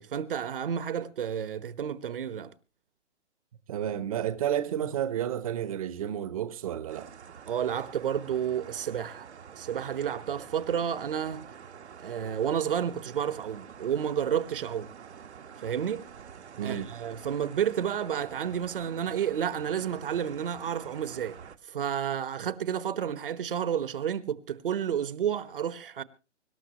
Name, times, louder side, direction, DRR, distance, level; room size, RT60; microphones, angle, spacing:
voice 1, 0.0-2.5 7.5-9.3 9.5-11.5 12.0-14.9 15.6-16.0 16.6-21.4 21.7-26.0, right 9 dB, 50° right, 1.2 m, -31 dB
voice 2, 3.7-7.1 16.6-16.9, right 10 dB, 30° right, 1.0 m, -31 dB
sound 1, 6.9-21.6, right 7 dB, 70° right, 1.4 m, -47 dB
25.0 x 12.5 x 3.0 m
hypercardioid pair, 160°, 35 cm